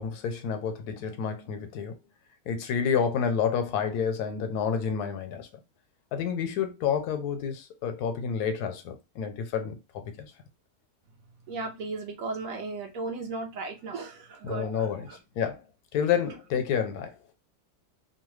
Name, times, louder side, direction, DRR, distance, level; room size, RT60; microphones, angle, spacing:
voice 1, 0.0-2.0 2.5-5.5 6.1-10.3 14.4-15.6 15.9-17.1, left 7 dB, 80° left, 1.1 m, -29 dB
voice 2, 11.5-15.2, right 3 dB, 65° right, 1.0 m, -36 dB
2.8 x 2.1 x 3.1 m
omnidirectional pair, 1.6 m